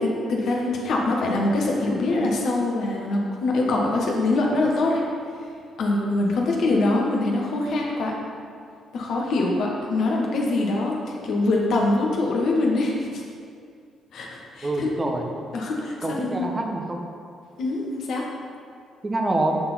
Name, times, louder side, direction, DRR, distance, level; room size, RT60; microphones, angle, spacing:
voice 1, 0.0-5.0 5.8-8.1 8.9-13.2 14.1-14.3 14.5-14.9 15.5-16.5 17.6-18.3, left 2 dB, 60° left, -2 dB, 1.2 m, -24 dB
voice 2, 14.6-15.3 16.0-17.0 19.0-19.6, right 2 dB, 25° right, 2 dB, 1.1 m, -26 dB
10.5 x 3.9 x 4.1 m, 2.3 s
figure-of-eight pair, 45°, 0 cm